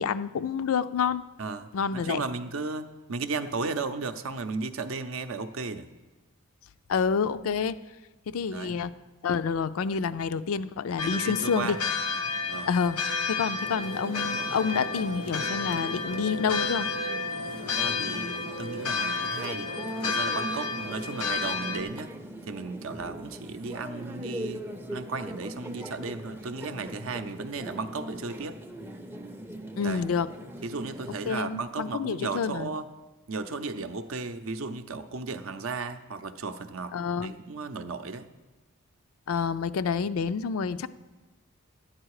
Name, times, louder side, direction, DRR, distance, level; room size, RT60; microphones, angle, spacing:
voice 1, 0.0-1.2 1.7-2.2 6.9-7.8 8.3-9.0 9.2-11.8 12.7-13.0 13.3-16.9 29.8-30.3 31.3-32.7 36.9-37.3 39.3-40.9, left 6 dB, 65° left, 14 dB, 0.4 m, -28 dB
voice 2, 1.4-5.9 8.5-8.8 11.0-11.8 12.5-12.7 17.6-19.7 20.0-22.1 22.5-24.6 24.9-28.6 29.8-30.0 30.6-32.8 33.3-36.9 37.2-38.3, right 4 dB, 60° right, 10 dB, 0.6 m, -35 dB
sound 1, 11.0-21.8, left 4 dB, 90° left, 0.9 m, -31 dB
sound 2, 13.6-31.3, right 1 dB, 10° right, 0.5 m, -41 dB
12.0 x 8.9 x 4.8 m, 1.2 s
head